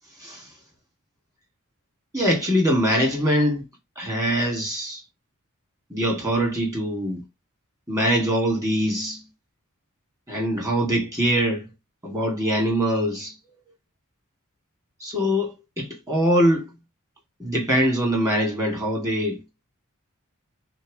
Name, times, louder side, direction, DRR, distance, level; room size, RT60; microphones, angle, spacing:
voice 1, 2.1-3.6 4.0-5.0 5.9-7.2 7.9-9.2 10.3-11.6 12.0-13.3 15.0-16.7 17.4-19.4, equal, 15° right, 2.8 m, -23 dB
4.5 x 4.4 x 5.1 m
head